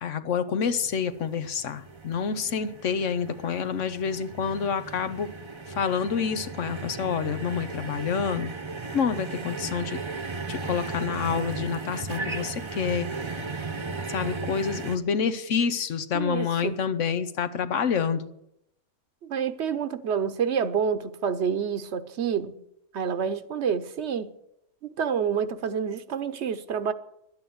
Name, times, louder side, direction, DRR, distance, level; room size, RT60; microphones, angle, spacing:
voice 1, 0.0-5.3 5.7-8.5 8.9-10.0 10.5-13.1 14.1-18.3, left 6 dB, 80° left, 1.3 m, -28 dB
sound 1, 0.7-15.0, right 3 dB, 25° right, 0.8 m, -36 dB
voice 2, 16.1-16.8 19.2-22.6 22.9-24.3 24.8-26.9, right 7 dB, 65° right, 1.1 m, -28 dB
11.5 x 8.8 x 9.3 m
omnidirectional pair, 1.2 m